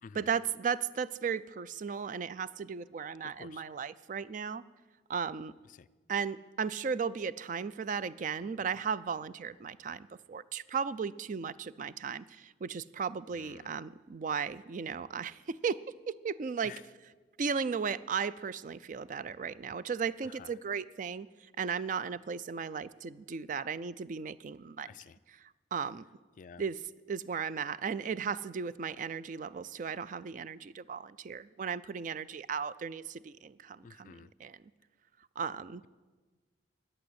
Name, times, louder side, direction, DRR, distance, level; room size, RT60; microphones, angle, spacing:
voice 1, 0.1-4.6 5.1-5.5 6.1-15.8 16.1-16.7 17.4-25.0 25.3-26.1 26.6-26.8 27.1-34.6 35.4-35.8, right 6 dB, 45° right, 17 dB, 0.3 m, -36 dB
voice 2, 13.3-13.7 16.6-16.8 20.3-20.5 24.9-25.2 26.4-26.6 33.8-34.3, left 6 dB, 45° left, 15 dB, 0.3 m, -51 dB
11.5 x 8.8 x 8.0 m, 1.3 s
head